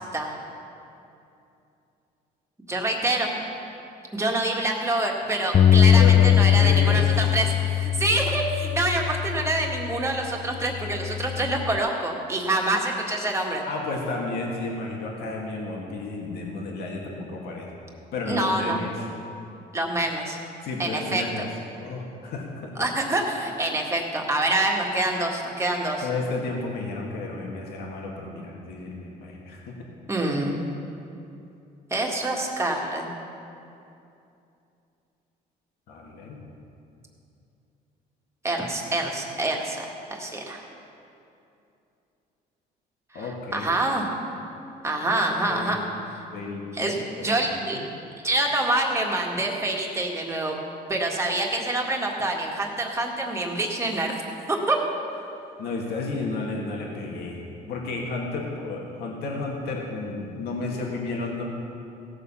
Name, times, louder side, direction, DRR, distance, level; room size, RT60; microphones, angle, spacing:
voice 1, 2.7-3.3 4.1-13.6 18.3-18.8 19.7-20.4 20.8-21.5 22.8-26.1 30.1-30.6 31.9-33.1 38.4-40.6 43.1-44.1 44.8-45.8 46.7-47.0 47.2-47.8 48.2-50.5 50.9-54.1 54.5-54.8, right 2 dB, 15° right, 0 dB, 1.8 m, -26 dB
Bass guitar, 5.5-10.0 10.6-11.8, left 9 dB, 40° left, 0.5 m, -21 dB
voice 2, 5.9-7.1 13.7-17.7 18.1-18.9 20.6-21.5 21.8-22.9 26.0-29.8 35.9-36.4 43.1-43.7 45.3-45.8 46.3-47.4 47.7-47.9 55.6-61.4, left 3 dB, 70° left, -1 dB, 1.8 m, -32 dB
17.0 x 6.8 x 5.6 m, 2.7 s
cardioid pair, 110°, 17 cm